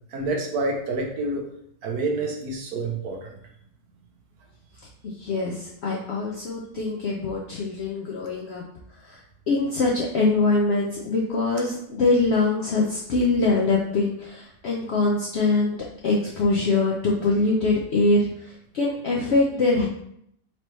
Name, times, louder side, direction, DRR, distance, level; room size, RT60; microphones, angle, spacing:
voice 1, 0.1-1.4 1.8-3.2, right 2 dB, 70° right, 1 dB, 1.2 m, -27 dB
voice 2, 5.0-8.6 9.0-9.2 9.5-19.9, left 3 dB, 70° left, -3 dB, 0.6 m, -23 dB
4.5 x 2.9 x 3.1 m, 0.73 s
omnidirectional pair, 1.7 m